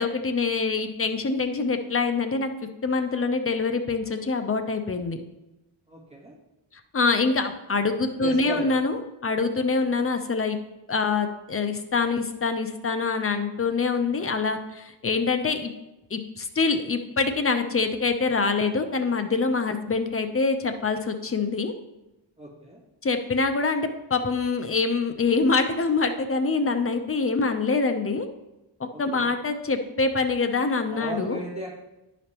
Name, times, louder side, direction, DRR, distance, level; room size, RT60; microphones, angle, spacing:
voice 1, 0.0-2.5 2.8-5.2 6.9-10.6 10.9-15.7 16.1-21.7 23.0-28.3 28.8-31.4, left 4 dB, 30° left, 7 dB, 0.6 m, -25 dB
voice 2, 5.9-6.3 8.2-8.7 22.4-22.8 28.9-29.3 30.9-31.7, right 1 dB, 15° right, -6 dB, 2.1 m, -36 dB
10.5 x 5.1 x 2.9 m, 0.96 s
wide cardioid pair, 90°, 48 cm